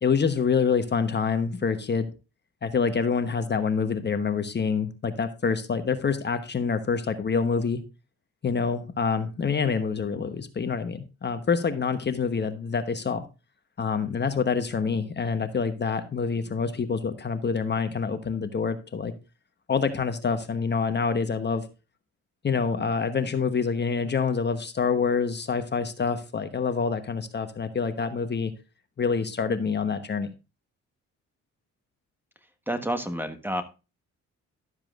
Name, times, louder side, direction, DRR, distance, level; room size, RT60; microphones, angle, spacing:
voice 1, 0.0-2.1 2.6-7.8 8.4-13.2 13.8-19.1 19.7-21.6 22.4-28.5 29.0-30.3, left 5 dB, 35° left, 8 dB, 1.1 m, -26 dB
voice 2, 32.7-33.6, right 1 dB, 5° right, 8 dB, 1.2 m, -29 dB
12.5 x 7.3 x 2.4 m, 0.30 s
cardioid pair, 90°, 30 cm